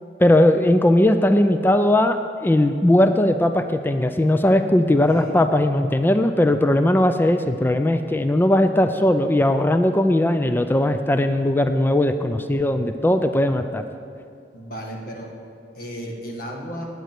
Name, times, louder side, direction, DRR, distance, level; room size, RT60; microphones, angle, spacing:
voice 1, 0.2-13.8, left 1 dB, 10° left, 8 dB, 0.4 m, -18 dB
voice 2, 5.1-5.5 14.5-15.3 15.8-16.9, equal, 60° left, 0 dB, 1.7 m, -34 dB
8.9 x 8.3 x 7.5 m, 2.4 s
head